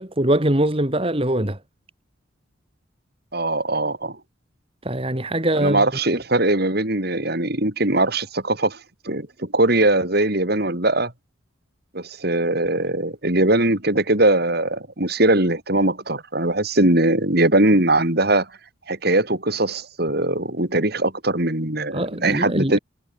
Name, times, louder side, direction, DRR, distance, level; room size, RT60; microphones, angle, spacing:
voice 1, 0.0-1.6 4.8-5.8 21.9-22.8, right 1 dB, 30° right, 2.5 m, -22 dB
voice 2, 3.3-4.2 5.6-8.8 9.0-11.1 11.9-18.5 18.9-22.8, right 2 dB, 50° right, 3.9 m, -20 dB
head